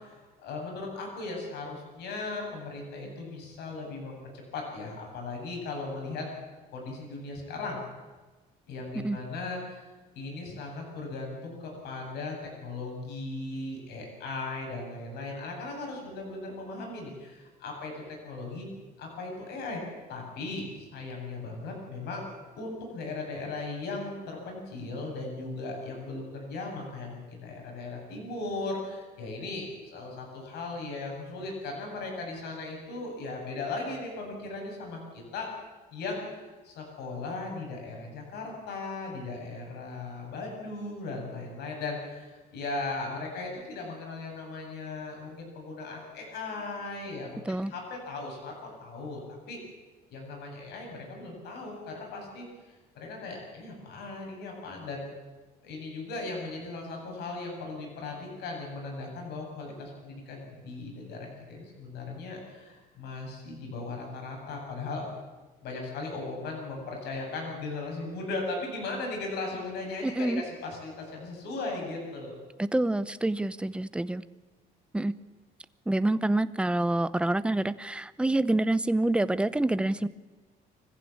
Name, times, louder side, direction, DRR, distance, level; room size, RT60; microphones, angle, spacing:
voice 1, 0.0-6.3 6.7-7.8 8.7-9.9 10.2-18.7 19.0-19.8 20.1-22.3 22.6-35.5 35.9-49.6 50.1-52.5 52.9-55.0 55.6-65.1 65.6-72.4, left 3 dB, 80° left, 1 dB, 7.7 m, -37 dB
voice 2, 70.0-70.4 72.6-74.2 74.9-75.1 75.9-80.1, right 2 dB, 5° right, 15 dB, 0.7 m, -27 dB
24.5 x 15.0 x 8.6 m, 1.3 s
cardioid pair, 110°, 17 cm